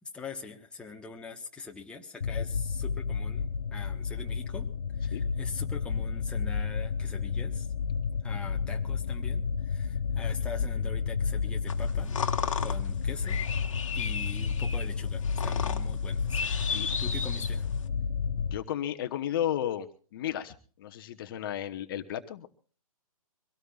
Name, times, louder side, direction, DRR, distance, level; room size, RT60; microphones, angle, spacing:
voice 1, 0.0-4.7 5.0-7.7 8.2-12.2 12.6-13.4 13.9-17.7, left 4 dB, 5° left, 1 dB, 1.2 m, -43 dB
sound 1, 2.2-18.6, left 5 dB, 80° left, 0.6 m, -31 dB
sound 2, 11.7-17.9, left 6 dB, 60° left, 1.4 m, -35 dB
voice 2, 18.5-19.9 20.1-22.5, left 11 dB, 40° left, 8 dB, 1.0 m, -33 dB
24.0 x 17.5 x 2.4 m, 0.40 s
figure-of-eight pair, 130°, 18 cm